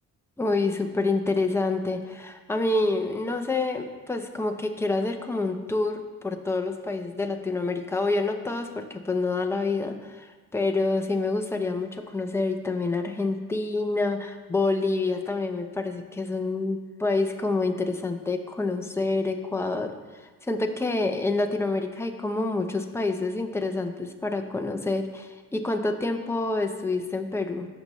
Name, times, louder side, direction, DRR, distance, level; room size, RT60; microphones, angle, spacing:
voice 1, 0.4-27.7, left 3 dB, 5° left, 4 dB, 0.7 m, -27 dB
16.0 x 6.8 x 3.1 m, 1.4 s
cardioid pair, 135°, 36 cm